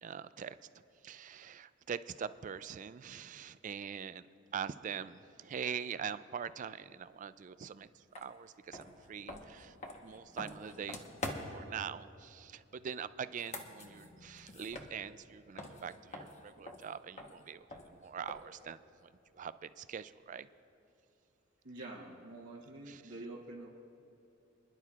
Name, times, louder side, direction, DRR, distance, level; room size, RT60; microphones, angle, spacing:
voice 1, 0.0-0.6 1.0-4.3 4.5-9.8 10.0-11.0 11.5-18.8 19.3-20.5 22.9-23.1, right 7 dB, 40° right, 14 dB, 0.3 m, -43 dB
sound 1, 8.1-8.3 8.7-11.7 13.2-15.3 15.6-18.6, left 2 dB, 35° left, 1.1 m, -46 dB
voice 2, 21.6-23.7, right 2 dB, 65° right, -4 dB, 1.1 m, -47 dB
28.5 x 11.0 x 2.4 m, 2.7 s
head